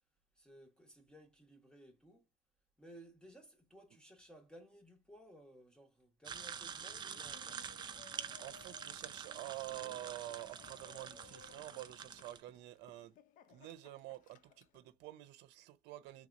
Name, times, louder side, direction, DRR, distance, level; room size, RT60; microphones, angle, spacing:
voice 1, 0.4-2.3 2.8-7.7, right 1 dB, 5° left, 1.2 m, -59 dB
sound 1, 6.2-12.4, right 7 dB, 25° right, 0.4 m, -47 dB
Laughter, 6.7-14.8, left 8 dB, 50° left, 0.5 m, -61 dB
voice 2, 8.4-13.2 13.5-16.3, right 16 dB, 75° right, 0.6 m, -48 dB
3.5 x 2.9 x 2.5 m
cardioid pair, 145°, 18 cm